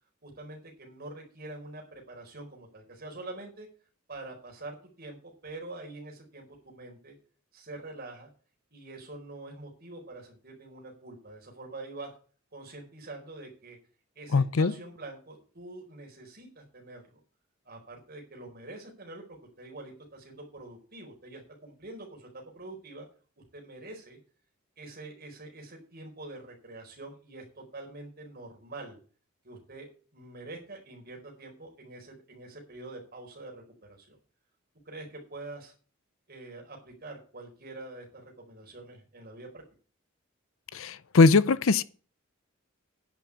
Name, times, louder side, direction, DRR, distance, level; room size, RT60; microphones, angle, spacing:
voice 1, 0.2-3.7 4.1-7.1 7.5-8.3 8.7-12.1 12.5-13.8 14.1-17.2 17.6-23.1 23.5-24.2 24.8-29.0 29.4-29.9 30.1-33.6 33.9-34.2 34.8-35.7 36.3-39.6, right 2 dB, 50° right, 4.5 m, -45 dB
voice 2, 14.3-14.7 40.7-41.8, left 4 dB, 80° left, 0.6 m, -21 dB
10.5 x 6.0 x 8.4 m
head